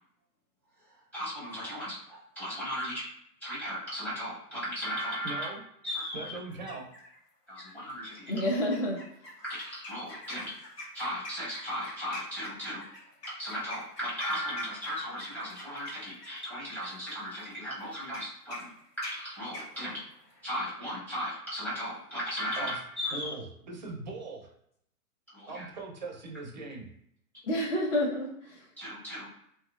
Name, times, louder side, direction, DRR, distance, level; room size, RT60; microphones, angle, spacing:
voice 1, 1.1-3.0 3.4-5.5 5.8-6.4 7.5-8.2 9.4-10.5 10.9-12.8 13.4-18.7 19.0-20.0 20.4-23.3 25.3-25.6 28.8-29.3, equal, 5° left, -9 dB, 0.7 m, -36 dB
voice 2, 5.2-5.6 6.1-6.9 22.6-22.8 23.1-24.5 25.5-26.9, right 3 dB, 30° right, 1 dB, 0.4 m, -40 dB
sound 1, 6.5-7.2 7.6-7.9 8.5-20.4, left 1 dB, 80° left, 1.2 m, -46 dB
voice 3, 8.2-9.3 27.4-28.7, left 1 dB, 50° left, -4 dB, 1.1 m, -30 dB
2.9 x 2.7 x 2.3 m, 0.72 s
hypercardioid pair, 135°, 47 cm